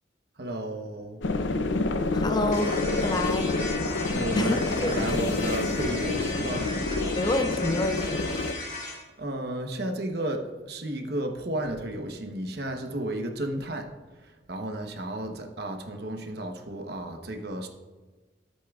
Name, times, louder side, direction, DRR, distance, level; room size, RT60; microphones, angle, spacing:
voice 1, 0.4-1.2 4.1-6.7 9.2-13.9 14.5-17.7, right 1 dB, 60° right, 4 dB, 0.9 m, -33 dB
sound 1, 1.2-8.5, left 2 dB, 90° left, 0.6 m, -28 dB
voice 2, 2.1-3.6 4.4-5.5 7.2-8.3, left 2 dB, 20° left, 8 dB, 0.4 m, -29 dB
sound 2, 2.5-9.0, left 2 dB, 40° left, 2.4 m, -37 dB
13.0 x 8.4 x 2.4 m, 1.3 s
head